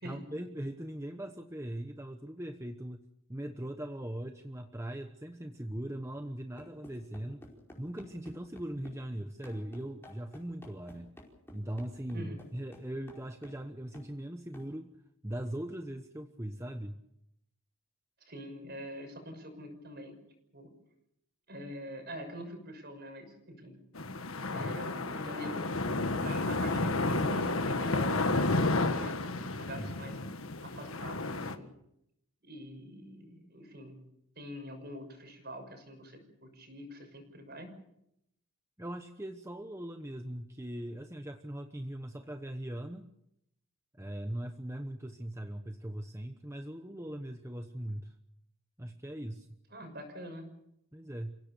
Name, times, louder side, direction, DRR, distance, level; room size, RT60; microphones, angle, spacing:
voice 1, 0.0-7.5 7.8-11.1 11.5-14.9 15.2-17.0 29.8-29.9 38.8-43.1 43.9-48.1 48.8-49.5 50.9-51.4, right 1 dB, 15° right, 6 dB, 1.0 m, -40 dB
sound 1, 6.6-9.0 9.4-13.7 13.9-14.1 14.5-14.7, left 1 dB, 10° left, 4.9 m, -53 dB
voice 2, 18.3-20.2 20.5-20.7 21.5-23.8 24.5-30.2 30.6-31.7 32.4-34.0 34.4-37.7 49.7-50.5, equal, 45° right, 6 dB, 6.2 m, -45 dB
sound 2, 24.0-31.6, left 2 dB, 70° left, 1.6 m, -31 dB
29.5 x 17.0 x 7.0 m, 0.79 s
head